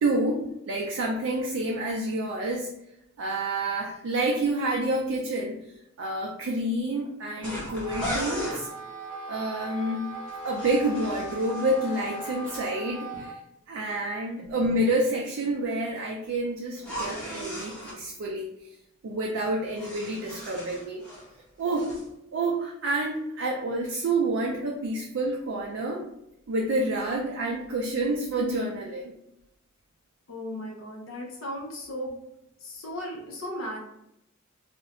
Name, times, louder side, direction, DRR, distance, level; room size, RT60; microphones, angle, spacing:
voice 1, 0.0-2.7 3.2-5.6 6.0-8.7 9.3-13.4 13.7-18.5 19.0-21.0 21.6-22.0 22.3-26.0 26.5-29.1, right 2 dB, 60° right, -1 dB, 0.4 m, -28 dB
sound 1, 7.4-8.6 10.3-12.7 16.8-18.0 19.4-21.3 21.6-22.0, equal, 5° left, 0.8 m, -37 dB
Wind instrument woodwind instrument, 7.7-13.4, right 1 dB, 40° left, 0.9 m, -38 dB
voice 2, 30.3-32.1 32.6-33.8, equal, 65° left, -1 dB, 0.5 m, -36 dB
2.4 x 2.1 x 2.8 m, 0.83 s
head